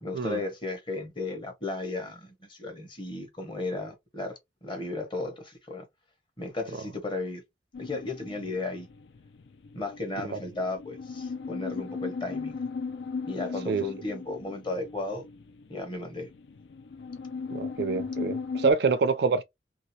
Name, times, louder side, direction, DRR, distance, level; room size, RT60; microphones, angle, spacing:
voice 1, 0.0-5.8 6.4-7.4 7.8-8.9 9.7-12.6 13.3-15.2 15.7-16.3, left 2 dB, 25° left, 1.1 m, -35 dB
sound 1, 7.7-18.7, left 4 dB, 85° left, 0.5 m, -37 dB
voice 2, 17.5-19.4, right 5 dB, 65° right, 0.4 m, -26 dB
2.9 x 2.8 x 3.0 m
head